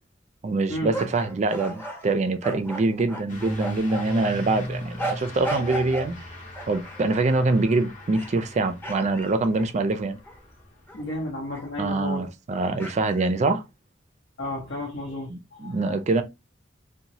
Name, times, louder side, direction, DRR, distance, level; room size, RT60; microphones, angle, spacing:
voice 1, 0.4-6.1 6.7-10.2 11.8-13.6 15.3-16.2, right 3 dB, 40° right, 0.4 m, -24 dB
sound 1, 0.9-4.3 5.0-6.1 6.5-7.4 8.0-8.5 8.8-10.4 10.9-11.0 11.5-11.7 12.8-13.3, right 2 dB, 10° left, 0.8 m, -35 dB
Truck / Accelerating revving vroom, 3.3-11.3, left 1 dB, 45° left, 0.8 m, -39 dB
voice 2, 10.9-12.3 14.4-15.9, left 1 dB, 70° left, 0.8 m, -33 dB
2.9 x 2.1 x 2.6 m
head